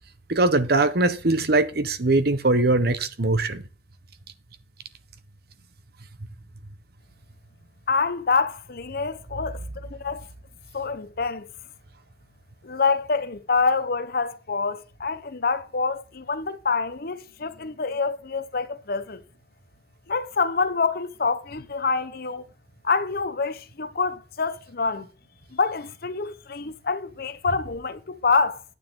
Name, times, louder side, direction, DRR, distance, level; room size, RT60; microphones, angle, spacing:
voice 1, 0.3-3.6, right 2 dB, 60° right, 1.1 m, -21 dB
voice 2, 7.9-9.6 9.9-10.3 10.7-11.5 12.6-19.2 20.1-22.4 22.8-25.1 25.5-28.6, left 4 dB, 55° left, 0.9 m, -26 dB
9.8 x 9.3 x 3.8 m
head